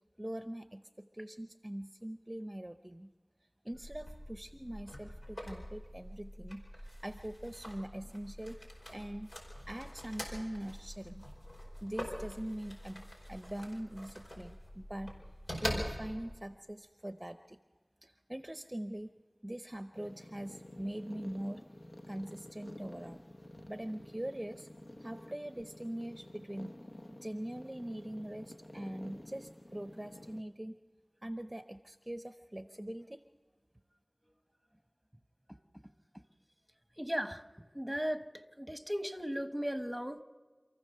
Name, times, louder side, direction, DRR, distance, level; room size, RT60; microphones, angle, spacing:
voice 1, 0.2-3.1 3.6-8.6 8.9-9.3 9.7-11.3 11.8-15.1 15.6-17.6 18.0-19.1 19.4-21.6 22.1-23.2 23.7-24.7 25.0-26.7 27.1-30.8 31.2-33.2, right 1 dB, 25° right, 0.7 m, -42 dB
sound 1, 3.7-16.4, equal, 85° left, 4.8 m, -44 dB
sound 2, 19.9-30.4, left 1 dB, 70° left, 1.2 m, -51 dB
voice 2, 37.0-37.4 37.7-38.3 38.6-40.2, equal, 5° right, 1.2 m, -36 dB
27.5 x 15.0 x 6.7 m
wide cardioid pair, 40°, 0 cm